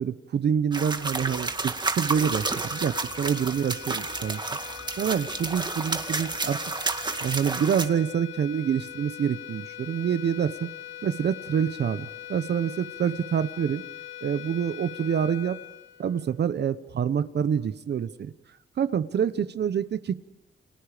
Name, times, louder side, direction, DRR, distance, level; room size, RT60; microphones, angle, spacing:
voice 1, 0.0-4.4 5.0-6.6 7.2-10.7 11.0-13.8 14.2-15.6 16.0-18.3 18.8-20.2, right 8 dB, 60° right, 13 dB, 0.9 m, -27 dB
sound 1, 0.7-7.9, right 3 dB, 20° right, 2.0 m, -31 dB
sound 2, 2.0-16.6, left 12 dB, 80° left, 2.4 m, -42 dB
29.5 x 27.0 x 5.1 m, 0.85 s
cardioid pair, 115°, 20 cm